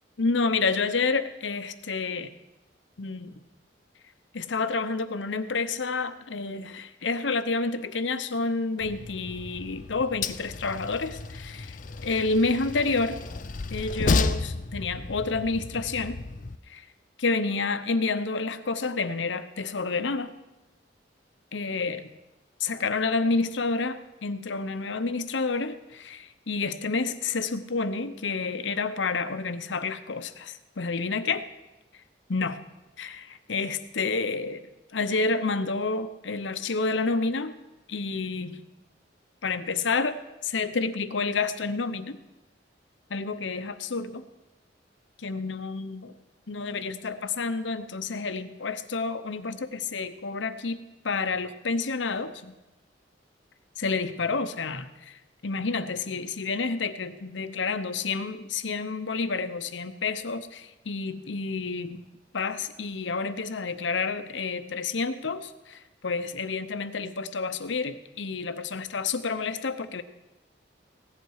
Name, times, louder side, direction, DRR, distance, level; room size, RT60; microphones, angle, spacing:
voice 1, 0.2-2.3 3.0-3.3 4.3-13.2 13.7-16.2 16.7-16.8 17.2-20.3 21.5-22.0 22.6-31.4 32.3-32.6 33.0-37.5 37.9-38.6 39.4-40.1 40.4-42.2 43.1-44.2 45.2-46.1 46.5-50.8 51.0-52.5 53.8-62.0 62.3-70.0, left 4 dB, 90° left, 11 dB, 0.8 m, -29 dB
Train, 8.8-16.6, left 3 dB, 45° left, 0.5 m, -32 dB
16.5 x 11.0 x 4.8 m, 0.97 s
head